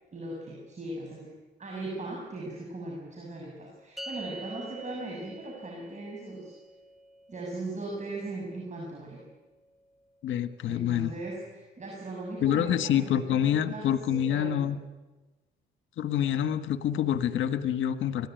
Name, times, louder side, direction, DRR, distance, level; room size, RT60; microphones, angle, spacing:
voice 1, 0.1-1.3 1.6-6.5 7.3-9.2 10.7-14.8, right 2 dB, 35° right, -1 dB, 6.9 m, -39 dB
sound 1, 4.0-10.5, right 1 dB, ahead, 1.7 m, -48 dB
voice 2, 10.2-11.1 12.4-14.8 16.0-18.3, left 10 dB, 75° left, 11 dB, 1.5 m, -27 dB
24.0 x 17.5 x 9.2 m, 1.2 s
cardioid pair, 90°, 20 cm